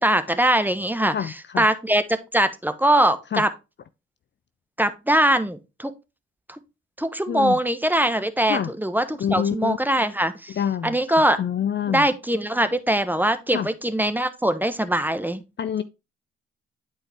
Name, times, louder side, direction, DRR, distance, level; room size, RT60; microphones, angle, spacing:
voice 1, 0.0-1.1 1.6-3.5 4.8-5.9 6.5-6.6 7.0-10.6 10.8-11.4 11.9-15.4, right 1 dB, 5° right, 1.0 m, -22 dB
voice 2, 1.1-1.7 3.3-3.4 7.3-7.6 8.5-8.7 9.2-9.8 10.5-12.1 13.5-13.7 15.6-15.8, left 8 dB, 35° left, 0.5 m, -26 dB
8.9 x 4.5 x 3.5 m
hypercardioid pair, 45°, 30 cm